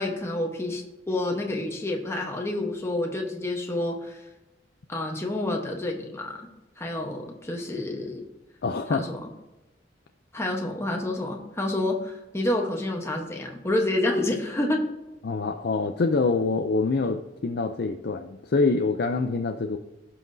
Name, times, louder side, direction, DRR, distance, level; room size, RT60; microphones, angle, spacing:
voice 1, 0.0-4.2 4.9-6.5 6.8-8.2 8.9-9.3 10.3-14.9, left 1 dB, 15° left, 0 dB, 1.0 m, -28 dB
voice 2, 8.6-9.1 15.2-19.8, left 3 dB, 60° left, 6 dB, 0.5 m, -25 dB
16.5 x 5.8 x 2.7 m, 1.0 s
head